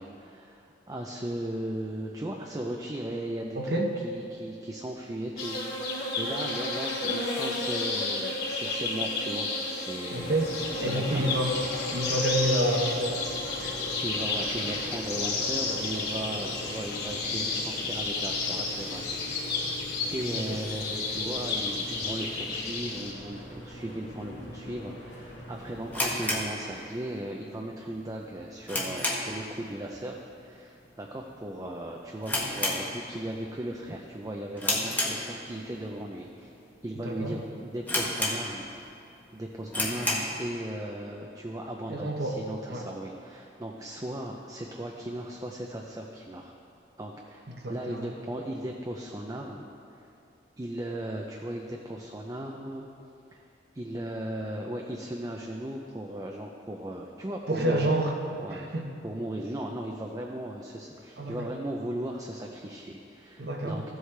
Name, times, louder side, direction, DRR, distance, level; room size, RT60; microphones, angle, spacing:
voice 1, 0.0-3.6 4.0-10.3 10.8-11.3 14.0-19.7 20.1-36.5 36.8-38.7 39.3-46.5 47.0-47.4 47.7-49.7 49.9-50.1 50.6-52.9 53.3-53.4 53.7-57.9 58.4-58.7 59.0-63.8, right 1 dB, 20° right, 1 dB, 0.5 m, -37 dB
voice 2, 3.5-3.9 10.1-10.5 10.8-11.5 11.9-13.2 13.6-13.8 20.3-20.4 37.0-37.4 41.9-42.4 42.7-42.9 47.5-48.1 57.5-58.1 58.5-58.9 61.2-61.4 63.4-63.8, right 1 dB, 60° right, 1 dB, 0.9 m, -28 dB
sound 1, 5.4-23.1, left 3 dB, 60° left, 2.5 m, -32 dB
sound 2, 10.1-26.4, left 1 dB, 80° left, 2.1 m, -42 dB
sound 3, 25.9-27.3 27.5-27.6 28.2-29.5 29.8-30.1 30.4-30.5 31.2-31.4 31.7-31.8 32.2-33.4 33.7-34.0 34.6-35.7 36.3-36.4 37.0-37.1 37.3-37.4 37.9-38.8 39.2-39.3 39.7-40.4, left 1 dB, 10° left, 1.1 m, -30 dB
14.0 x 7.9 x 3.3 m, 2.6 s
head